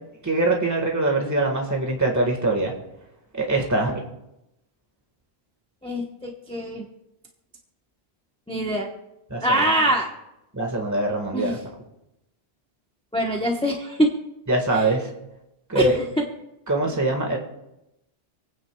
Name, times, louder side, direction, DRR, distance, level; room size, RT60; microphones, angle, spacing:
voice 1, 0.2-2.7 3.3-4.0 9.3-9.6 10.5-11.6 14.5-15.1 15.7-16.0 16.7-17.4, right 2 dB, 15° right, 1 dB, 1.7 m, -23 dB
voice 2, 5.8-6.8 8.5-8.9 9.4-10.1 11.3-11.5 13.1-14.1 14.7-14.9 15.7-16.2, right 1 dB, 5° left, 0 dB, 1.0 m, -24 dB
27.5 x 9.5 x 2.3 m, 0.88 s
omnidirectional pair, 1.0 m